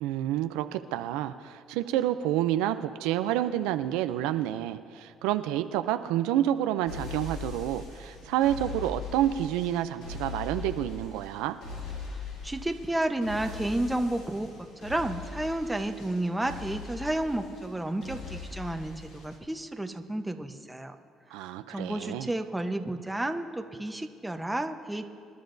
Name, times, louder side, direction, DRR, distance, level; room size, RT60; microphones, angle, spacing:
voice 1, 0.0-11.6 21.3-22.3, right 12 dB, 90° right, 10 dB, 0.4 m, -29 dB
sound 1, 6.9-19.4, left 4 dB, 80° left, 2.4 m, -41 dB
voice 2, 12.4-14.5 14.8-21.0 21.7-25.1, right 1 dB, 10° right, 6 dB, 0.9 m, -31 dB
25.0 x 11.0 x 2.7 m, 2.3 s
supercardioid pair, 80°, 0 cm